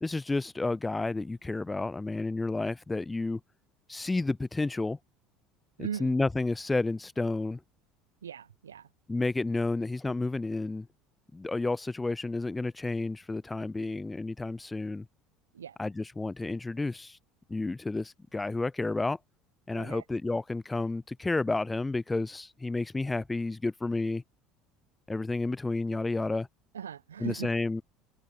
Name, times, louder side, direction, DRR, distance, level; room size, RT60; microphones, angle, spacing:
voice 1, 0.0-3.4 3.9-5.0 5.8-7.6 9.1-10.9 11.3-15.1 15.8-17.2 17.5-19.2 19.7-24.2 25.1-26.5 27.2-27.8, left 3 dB, 15° left, 0.4 m, -31 dB
voice 2, 5.8-6.1 8.2-8.9 15.5-15.8 19.8-20.0 26.7-27.5, right 8 dB, 75° right, 1.1 m, -39 dB
figure-of-eight pair, 65°, 0 cm